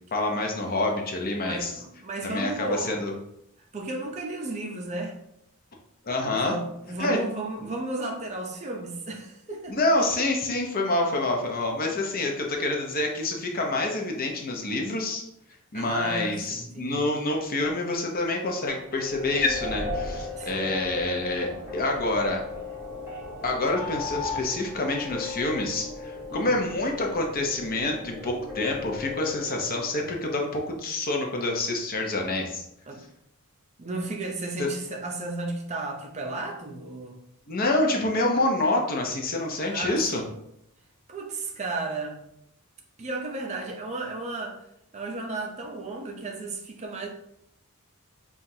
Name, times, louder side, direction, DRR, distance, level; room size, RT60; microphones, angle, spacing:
voice 1, 0.1-1.7 2.2-3.1 6.0-6.6 7.0-7.2 9.7-15.2 15.7-22.4 23.4-32.6 34.6-34.7 37.5-40.2, left 2 dB, 40° left, 1 dB, 0.6 m, -27 dB
voice 2, 1.4-3.0 3.7-5.2 6.3-9.8 15.7-17.0 20.3-20.7 26.3-26.6 32.9-33.0 33.8-37.2 39.6-40.2 41.1-42.2 43.0-44.6 44.9-47.1, right 2 dB, 30° right, 1 dB, 0.5 m, -34 dB
sound 1, 18.8-30.2, left 3 dB, 10° right, 1.0 m, -37 dB
5.6 x 2.3 x 2.7 m, 0.78 s
head